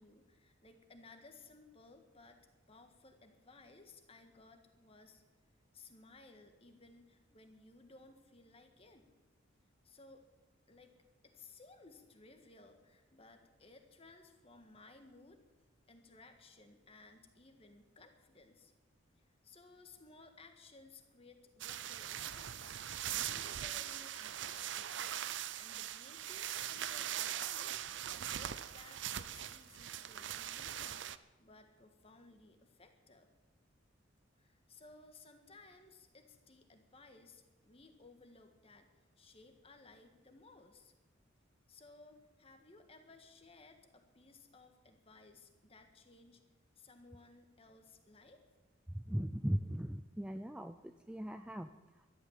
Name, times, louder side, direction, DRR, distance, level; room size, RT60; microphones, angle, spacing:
voice 1, 0.0-2.4 2.7-5.2 5.7-9.1 9.8-10.2 10.7-10.9 11.2-15.4 15.9-18.7 19.1-22.8 23.1-25.0 25.5-27.9 28.3-33.3 34.4-38.9 39.2-40.9 41.7-46.4 46.7-48.4, left 3 dB, 30° left, 6 dB, 1.6 m, -59 dB
sound 1, 21.6-31.2, right 11 dB, 65° right, 0.6 m, -41 dB
voice 2, 48.9-51.7, equal, 5° right, 8 dB, 0.4 m, -38 dB
13.0 x 11.5 x 7.4 m, 1.3 s
head